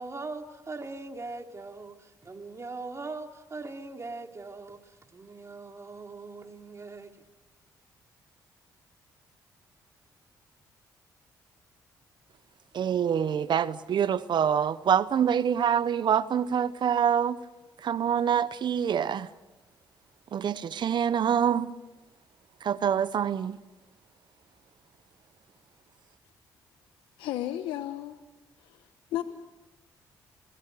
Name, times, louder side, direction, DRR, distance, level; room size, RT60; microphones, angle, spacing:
voice 1, 0.0-7.1, right 3 dB, 35° right, 3.3 m, -41 dB
voice 2, 12.7-17.4 17.8-19.3 20.3-21.7 22.6-23.6, right 8 dB, 60° right, 0.9 m, -26 dB
voice 3, 27.2-28.2 28.6-29.2, left 13 dB, 85° left, 1.1 m, -34 dB
29.5 x 21.0 x 6.9 m
supercardioid pair, 55°, 9 cm